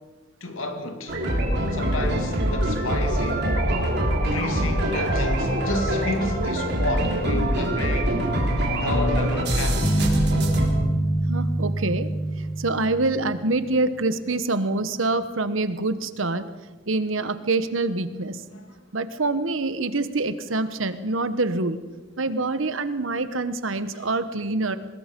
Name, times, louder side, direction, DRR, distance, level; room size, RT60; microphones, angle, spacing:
voice 1, 0.4-1.2 1.7-3.5 4.2-8.2 8.8-10.2 18.5-18.7 23.9-24.1, left 2 dB, 90° left, 2.5 m, -31 dB
sound 1, 1.1-10.7, right 1 dB, 60° right, 3.9 m, -24 dB
sound 2, 9.8-14.0, right 1 dB, 25° left, 1.2 m, -26 dB
voice 2, 11.3-12.1 12.6-16.5 16.9-18.4 18.9-21.8 22.2-24.8, right 2 dB, 80° right, 1.2 m, -25 dB
24.0 x 20.5 x 5.3 m
head